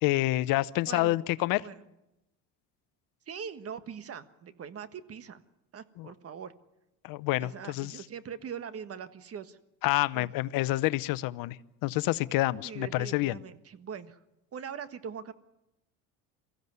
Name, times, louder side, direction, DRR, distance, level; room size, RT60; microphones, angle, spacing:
voice 1, 0.0-1.7 6.0-6.1 7.0-8.0 9.8-11.6 11.8-13.4, left 18 dB, 70° left, 18 dB, 0.8 m, -28 dB
voice 2, 0.8-1.2 1.6-1.8 3.3-5.4 5.7-6.5 7.4-9.6 10.1-10.3 12.6-14.2 14.5-15.3, right 7 dB, 40° right, 12 dB, 1.5 m, -42 dB
23.5 x 15.5 x 9.5 m, 0.91 s
supercardioid pair, 95°, 36 cm